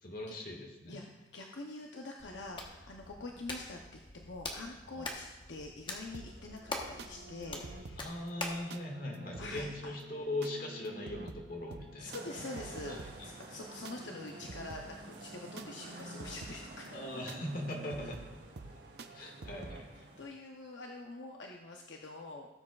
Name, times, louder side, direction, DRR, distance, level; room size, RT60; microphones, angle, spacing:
voice 1, 0.0-1.0 4.9-5.1 8.0-12.2 12.9-13.3 16.9-18.3 19.1-20.1, left 1 dB, 50° left, 0 dB, 1.8 m, -40 dB
voice 2, 0.9-8.2 9.4-9.9 12.0-17.1 18.0-18.1 19.2-19.3 20.2-22.5, left 2 dB, 75° left, 1 dB, 0.7 m, -45 dB
Hands, 2.2-8.7, left 2 dB, 25° left, 1.1 m, -44 dB
sound 1, 6.1-19.8, right 2 dB, 60° right, 0.6 m, -49 dB
sound 2, 12.1-20.3, right 2 dB, 80° right, 2.6 m, -51 dB
17.5 x 7.3 x 2.4 m, 1.1 s
head